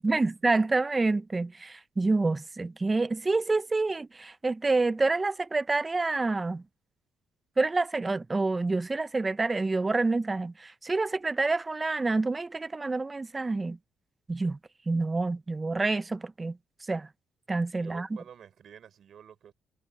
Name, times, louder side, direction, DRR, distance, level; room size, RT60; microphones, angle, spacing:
voice 1, 0.0-6.6 7.6-13.8 14.3-14.6 14.9-16.6 16.9-17.1 17.5-18.1, right 3 dB, 25° right, 0.7 m, -27 dB
voice 2, 17.8-19.5, right 8 dB, 60° right, 6.1 m, -50 dB
cardioid pair, 90°, 0 cm